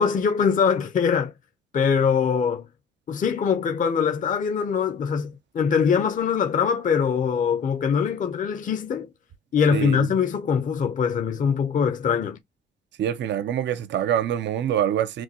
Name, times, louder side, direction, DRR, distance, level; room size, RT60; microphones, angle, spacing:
voice 1, 0.0-1.3 1.7-2.7 3.1-9.1 9.5-12.4, left 6 dB, 40° left, 0.7 m, -23 dB
voice 2, 9.7-10.1 13.0-15.2, right 10 dB, 65° right, 0.6 m, -25 dB
6.1 x 2.2 x 2.8 m
cardioid pair, 90°, 20 cm